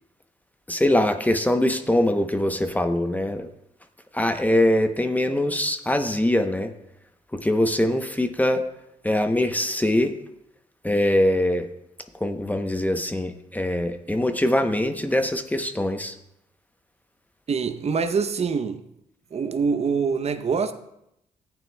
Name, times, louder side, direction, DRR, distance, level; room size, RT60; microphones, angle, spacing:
voice 1, 0.7-3.5 4.1-6.7 7.3-8.6 9.0-10.2 10.8-11.7 12.2-16.1, left 1 dB, 10° left, 7 dB, 0.8 m, -23 dB
voice 2, 17.5-18.8 19.3-20.7, right 5 dB, 45° right, 9 dB, 0.7 m, -24 dB
14.0 x 9.2 x 2.3 m, 0.80 s
cardioid pair, 65°, 15 cm